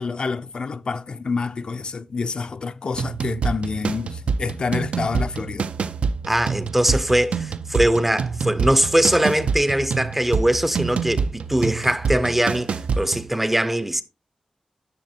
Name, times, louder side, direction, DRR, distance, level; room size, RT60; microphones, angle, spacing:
voice 1, 0.0-5.7, left 4 dB, 50° left, 0.4 m, -28 dB
sound 1, 2.9-13.3, right 5 dB, 80° right, 0.4 m, -27 dB
voice 2, 6.3-14.0, right 1 dB, 10° right, 0.5 m, -21 dB
10.5 x 6.6 x 2.7 m
wide cardioid pair, 155°, 2 cm